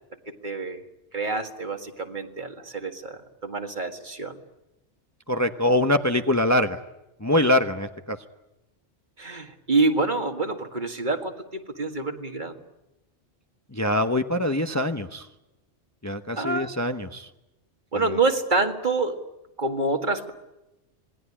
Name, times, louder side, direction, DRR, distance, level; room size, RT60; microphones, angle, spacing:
voice 1, 0.3-0.8 1.1-4.4 9.2-12.6 16.4-16.7 17.9-19.2 19.6-20.3, right 3 dB, 45° right, 6 dB, 2.1 m, -27 dB
voice 2, 5.3-6.8 7.2-8.2 13.7-15.3 16.0-17.3, left 1 dB, 15° left, 7 dB, 0.9 m, -23 dB
26.5 x 20.0 x 9.9 m, 0.97 s
omnidirectional pair, 1.2 m